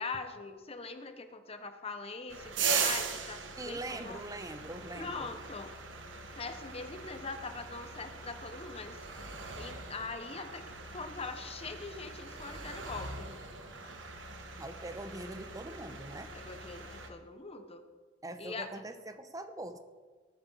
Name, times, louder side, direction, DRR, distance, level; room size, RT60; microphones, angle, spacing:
voice 1, 0.0-4.2 4.9-5.7 6.4-9.0 9.6-10.6 10.9-13.3 16.3-17.8 18.4-18.7, left 4 dB, 30° left, 8 dB, 1.0 m, -42 dB
sound 1, 2.3-17.1, right 5 dB, 70° right, 1.4 m, -40 dB
voice 2, 3.6-5.3 14.6-16.3 18.2-19.8, right 2 dB, 20° right, 9 dB, 0.8 m, -42 dB
19.5 x 8.7 x 4.0 m, 1.4 s
head